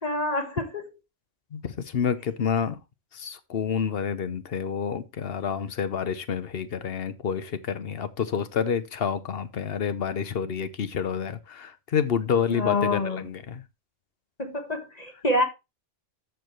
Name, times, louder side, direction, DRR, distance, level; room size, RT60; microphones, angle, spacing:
voice 1, 0.0-0.7 12.5-13.3 14.4-15.4, left 2 dB, 35° left, 1.5 m, -26 dB
voice 2, 1.5-2.8 3.1-13.6, left 7 dB, 60° left, 1.0 m, -28 dB
14.0 x 4.7 x 3.2 m
omnidirectional pair, 1.2 m